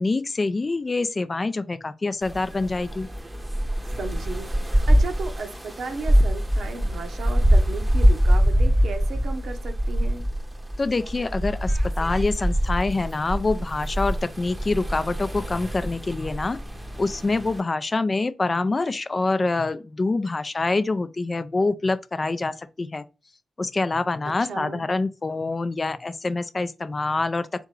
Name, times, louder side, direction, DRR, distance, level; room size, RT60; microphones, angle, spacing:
voice 1, 0.0-3.1 10.8-16.6 17.0-23.0 23.6-27.7, left 3 dB, 35° left, 0.4 m, -26 dB
sound 1, 2.2-17.6, equal, 20° right, 0.8 m, -24 dB
voice 2, 4.0-10.2 24.5-24.8, right 3 dB, 70° right, 0.8 m, -35 dB
3.6 x 3.5 x 3.1 m
supercardioid pair, 50°, 0 cm